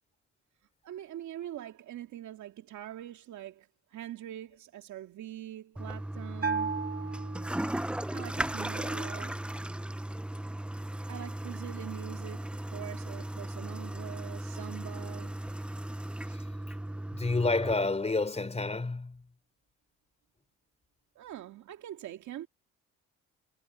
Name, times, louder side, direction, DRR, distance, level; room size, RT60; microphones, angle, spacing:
voice 1, 0.8-6.8 8.1-9.4 11.1-15.4 21.2-22.5, right 12 dB, 70° right, 2.5 m, -43 dB
Toilet flush, 5.8-17.7, right 1 dB, 5° right, 0.6 m, -37 dB
Bell, 6.4-8.0, right 5 dB, 30° right, 2.4 m, -34 dB
voice 2, 17.1-19.2, left 3 dB, 20° left, 3.6 m, -29 dB
supercardioid pair, 80°, 30 cm